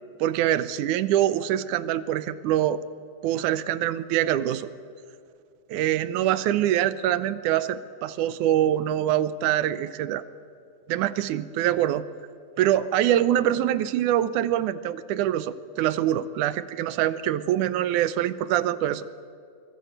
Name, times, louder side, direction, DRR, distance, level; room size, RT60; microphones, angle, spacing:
voice 1, 0.2-2.8 3.2-4.7 5.7-10.2 10.9-12.1 12.6-19.1, right 12 dB, 80° right, 14 dB, 2.3 m, -24 dB
25.0 x 21.0 x 8.0 m, 2.5 s
omnidirectional pair, 3.6 m